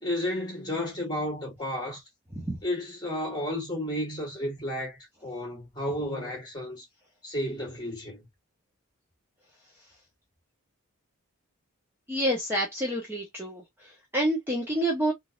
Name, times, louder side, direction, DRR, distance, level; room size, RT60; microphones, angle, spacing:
voice 1, 0.0-2.0 2.6-6.8 7.2-8.3, left 1 dB, 20° left, 1.7 m, -32 dB
voice 2, 12.1-15.1, right 1 dB, 10° right, 0.7 m, -28 dB
3.8 x 2.5 x 2.3 m
head